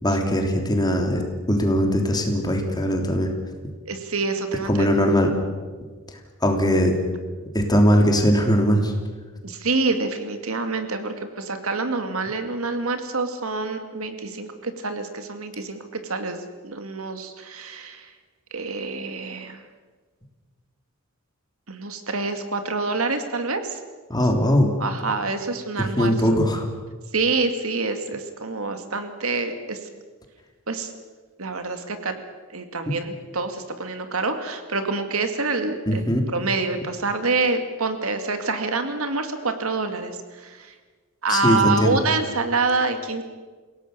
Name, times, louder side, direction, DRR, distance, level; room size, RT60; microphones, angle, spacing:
voice 1, 0.0-1.2 1.5-3.3 4.6-5.3 6.4-7.0 7.5-8.9 24.1-24.7 25.8-26.7 35.9-36.3 41.3-42.0, equal, 20° left, 3 dB, 3.2 m, -20 dB
voice 2, 3.9-4.9 9.4-18.1 18.5-19.6 21.7-23.8 24.8-26.1 27.1-29.8 30.7-30.9 31.4-32.1 32.5-36.0 36.3-40.7 41.2-43.2, right 3 dB, 75° right, 7 dB, 2.3 m, -26 dB
28.5 x 17.5 x 6.8 m, 1.4 s
head